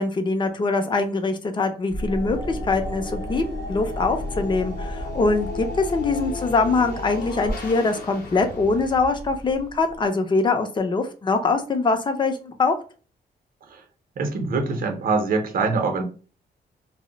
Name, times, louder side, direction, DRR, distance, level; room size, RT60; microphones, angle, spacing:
voice 1, 0.0-12.8, left 3 dB, 25° left, 0.4 m, -23 dB
sound 1, 1.9-10.0, left 1 dB, 55° left, 0.7 m, -32 dB
voice 2, 14.2-16.0, right 4 dB, 55° right, 0.6 m, -24 dB
2.1 x 2.0 x 3.7 m
wide cardioid pair, 145°, 17 cm